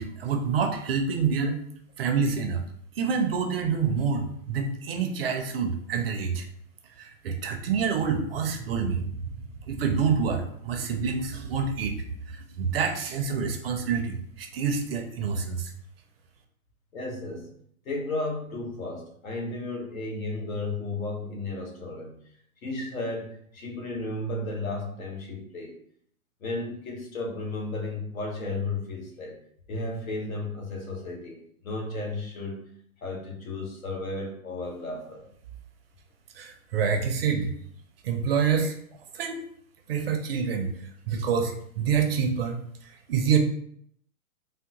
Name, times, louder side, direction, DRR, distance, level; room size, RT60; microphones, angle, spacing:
voice 1, 0.0-1.6 2.0-2.6 3.0-6.5 7.0-9.1 9.7-11.9 12.3-15.7 36.4-37.5 38.0-38.7 39.1-39.4 39.9-40.7 41.1-43.4, right 6 dB, 45° right, 4 dB, 0.4 m, -27 dB
voice 2, 16.9-17.5 17.8-22.1 22.6-25.8 26.4-29.4 29.7-31.4 31.6-32.6 33.0-35.2, left 2 dB, 70° left, 0 dB, 1.1 m, -33 dB
3.5 x 2.1 x 2.8 m, 0.65 s
hypercardioid pair, 140°, 43 cm